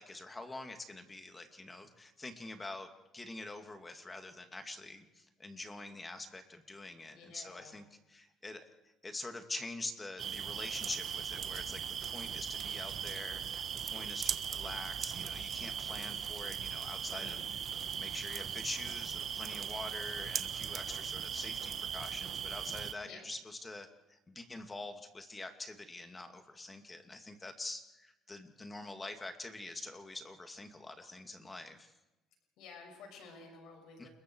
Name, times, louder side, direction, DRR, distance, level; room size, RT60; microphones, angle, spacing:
voice 1, 0.0-8.6 9.0-17.4 17.9-31.9 34.0-34.1, left 2 dB, 20° left, 6 dB, 2.6 m, -45 dB
voice 2, 7.1-7.7 17.1-17.4 23.0-23.3 32.6-34.1, left 4 dB, 70° left, 3 dB, 6.8 m, -52 dB
sound 1, 10.2-22.9, right 8 dB, 50° right, 1.3 m, -39 dB
29.0 x 22.0 x 4.8 m, 0.97 s
cardioid pair, 115°, 0 cm